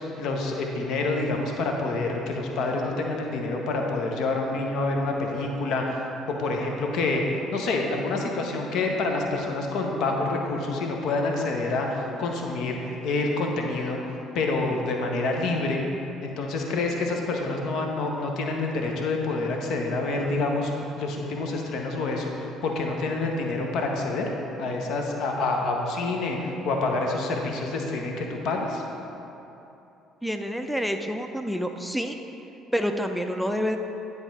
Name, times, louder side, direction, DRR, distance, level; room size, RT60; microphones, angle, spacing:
voice 1, 0.1-6.0 6.4-7.2 7.5-14.0 14.3-15.8 16.2-20.7 21.0-24.3 24.6-28.8, left 3 dB, 55° left, 1 dB, 0.8 m, -27 dB
voice 2, 30.2-32.2 32.7-33.8, equal, ahead, 5 dB, 0.4 m, -28 dB
9.9 x 3.5 x 4.1 m, 3.0 s
figure-of-eight pair, 50°, 0 cm